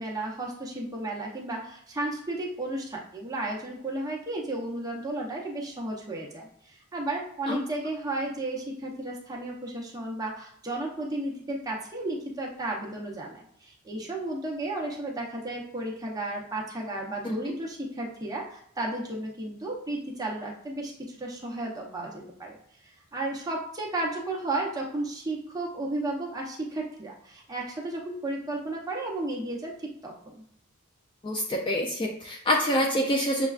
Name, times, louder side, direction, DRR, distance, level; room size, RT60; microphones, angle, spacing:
voice 1, 0.0-22.6 23.1-30.4, right 2 dB, 15° right, -2 dB, 0.7 m, -33 dB
voice 2, 31.2-33.5, equal, 20° left, 1 dB, 0.3 m, -26 dB
6.5 x 2.2 x 2.4 m, 0.67 s
head